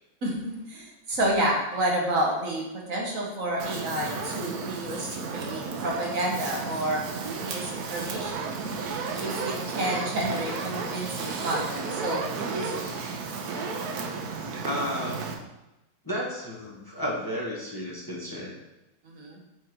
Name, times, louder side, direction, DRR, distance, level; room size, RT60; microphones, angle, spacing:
voice 1, 0.2-8.6 9.2-12.2 12.5-13.0 19.0-19.4, right 1 dB, 60° right, -2 dB, 1.6 m, -30 dB
Fire, 3.6-15.3, right 4 dB, 80° right, 1.4 m, -33 dB
voice 2, 14.6-15.2 16.0-18.5, equal, 15° left, -4 dB, 1.2 m, -32 dB
6.0 x 4.6 x 4.5 m, 0.96 s
omnidirectional pair, 1.6 m